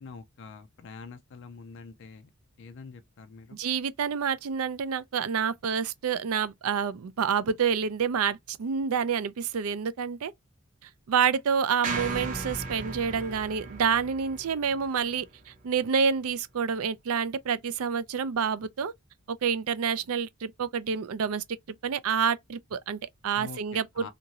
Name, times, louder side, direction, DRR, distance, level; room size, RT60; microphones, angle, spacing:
voice 1, 0.0-2.3 2.6-3.6 23.3-24.1, left 4 dB, 55° left, 0.4 m, -45 dB
voice 2, 3.5-10.3 10.8-18.9 19.3-21.4 21.8-24.1, right 6 dB, 75° right, 0.4 m, -28 dB
sound 1, 11.8-16.1, right 3 dB, 35° right, 0.7 m, -37 dB
2.8 x 2.6 x 2.7 m
head